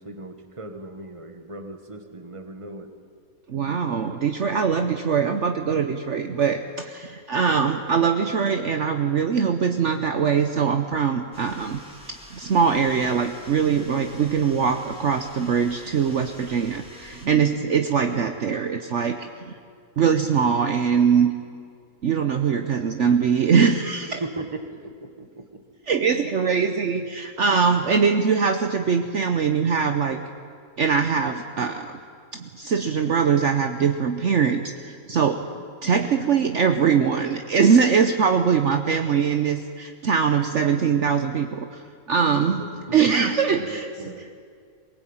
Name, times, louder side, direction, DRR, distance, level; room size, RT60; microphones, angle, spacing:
voice 1, 0.0-3.0 24.1-25.7 42.2-43.1 43.5-44.3, right 2 dB, 20° right, 7 dB, 1.6 m, -38 dB
voice 2, 3.5-11.8 12.1-19.5 20.0-21.3 22.0-24.2 25.9-30.2 30.8-32.0 32.3-35.4 35.8-42.6 42.9-44.1, right 6 dB, 55° right, 6 dB, 1.2 m, -22 dB
sound 1, 11.3-17.3, equal, 5° right, 3.8 m, -47 dB
23.0 x 18.5 x 9.0 m, 2.2 s
omnidirectional pair, 1.5 m